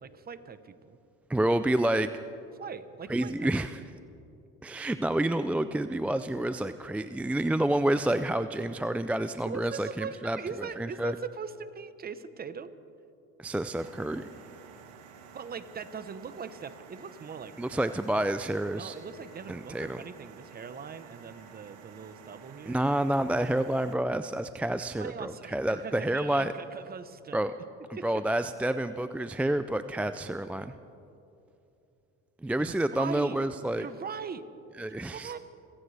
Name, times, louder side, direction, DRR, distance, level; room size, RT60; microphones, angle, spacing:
voice 1, 0.0-1.0 2.5-3.5 9.4-12.7 15.3-17.9 18.7-22.8 24.8-27.5 27.9-28.1 32.6-33.4 33.7-34.4 34.9-35.4, right 6 dB, 30° right, 12 dB, 0.9 m, -41 dB
voice 2, 1.3-2.1 3.1-3.8 4.6-10.4 10.8-11.1 13.4-14.3 17.6-19.0 19.5-20.0 22.7-26.5 27.3-27.5 28.0-30.7 32.4-33.9 34.8-35.3, right 1 dB, 5° right, 11 dB, 0.3 m, -29 dB
sound 1, 13.8-24.0, right 6 dB, 75° right, 1.5 m, -51 dB
26.0 x 16.0 x 3.4 m, 2.7 s
cardioid pair, 100°, 30 cm